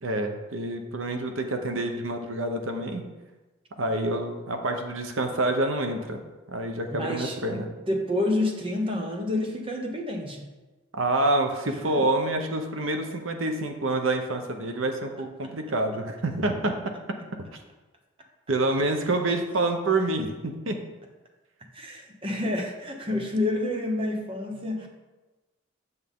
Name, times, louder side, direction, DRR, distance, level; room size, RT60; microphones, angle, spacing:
voice 1, 0.0-3.0 3.8-6.2 6.5-7.7 11.0-16.7 18.5-20.8 23.1-23.2, right 2 dB, 85° right, 5 dB, 0.9 m, -27 dB
voice 2, 6.9-7.4 7.9-10.5 11.6-12.0 21.7-24.9, left 1 dB, 25° right, 2 dB, 1.1 m, -29 dB
8.2 x 8.0 x 3.7 m, 1.2 s
head